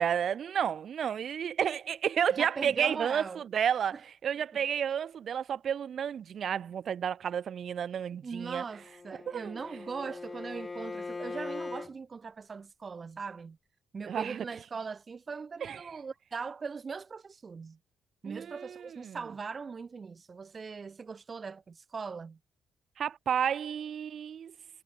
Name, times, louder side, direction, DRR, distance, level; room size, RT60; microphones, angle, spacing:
voice 1, 0.0-8.6 9.3-9.6 10.0-10.1 14.0-14.4 15.6-15.8 18.2-19.2 23.0-24.5, right 8 dB, 50° right, 2.7 m, -31 dB
voice 2, 2.4-3.4 8.2-13.6 13.9-17.8 18.2-22.4, right 5 dB, 30° right, 2.1 m, -40 dB
Bowed string instrument, 8.7-11.9, left 3 dB, 20° left, 1.3 m, -40 dB
cardioid pair, 130°, 0 cm